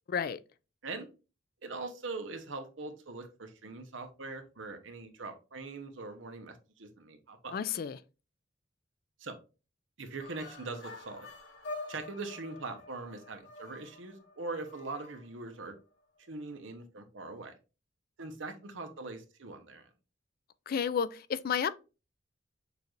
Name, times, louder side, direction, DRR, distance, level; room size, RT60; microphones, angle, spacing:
voice 1, 0.1-0.4 7.5-8.0 20.7-21.7, left 7 dB, 50° left, 0.3 m, -31 dB
voice 2, 1.6-7.5 9.2-9.4 10.0-11.3 11.9-15.7 16.3-17.5 18.2-19.9, right 3 dB, 85° right, 0.9 m, -42 dB
sound 1, 10.2-15.8, left 2 dB, 75° left, 2.9 m, -47 dB
6.7 x 2.6 x 3.1 m
head